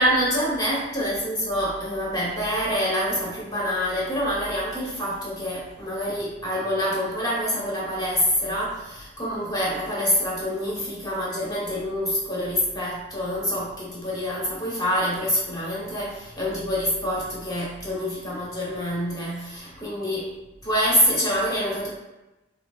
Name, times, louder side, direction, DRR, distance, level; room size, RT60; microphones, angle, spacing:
voice 1, 0.0-20.3 20.6-21.9, equal, 20° left, -6 dB, 1.1 m, -26 dB
3.6 x 3.1 x 2.4 m, 1.0 s
head